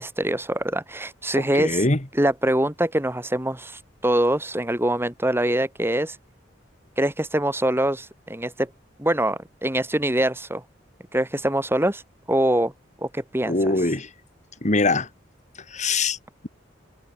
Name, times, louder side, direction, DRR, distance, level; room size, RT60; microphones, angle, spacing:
voice 1, 0.0-1.9 2.1-6.2 7.0-8.7 9.0-10.6 11.1-12.0 12.3-12.7 13.0-13.9, right 1 dB, 15° right, 3.9 m, -24 dB
voice 2, 1.5-2.0 13.5-14.1 14.6-15.1 15.7-16.2, left 2 dB, 40° left, 2.5 m, -22 dB
head